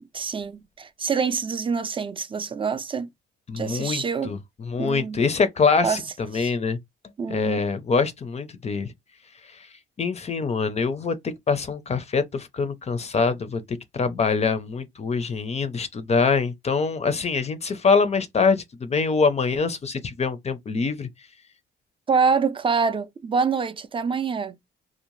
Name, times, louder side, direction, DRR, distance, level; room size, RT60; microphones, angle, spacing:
voice 1, 0.1-3.1 3.6-4.3 4.8-5.2 5.8-6.0 6.3-6.5 7.2-7.6 22.1-24.6, right 5 dB, 25° right, 0.4 m, -26 dB
voice 2, 3.5-6.8 7.3-8.9 10.0-13.6 13.9-21.1, left 5 dB, 35° left, 0.5 m, -24 dB
2.6 x 2.1 x 3.0 m
cardioid pair, 90°, 20 cm